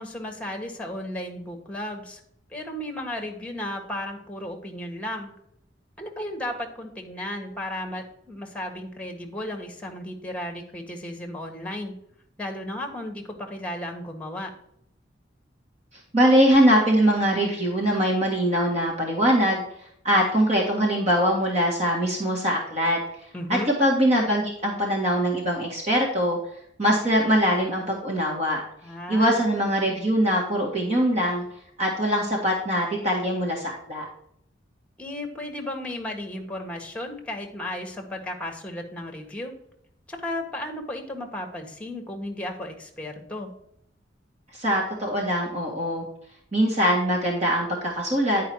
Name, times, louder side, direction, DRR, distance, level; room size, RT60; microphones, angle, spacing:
voice 1, 0.0-2.2 2.5-5.3 6.0-11.9 12.4-14.5 23.3-23.7 28.8-29.4 35.0-39.5 40.1-43.5, left 1 dB, 5° left, 3 dB, 1.5 m, -34 dB
voice 2, 16.1-19.6 20.0-23.0 23.5-26.4 26.8-28.6 29.1-31.4 31.8-34.1 44.5-46.1 46.5-48.5, equal, 35° right, -1 dB, 1.8 m, -22 dB
10.0 x 4.9 x 4.6 m, 0.70 s
head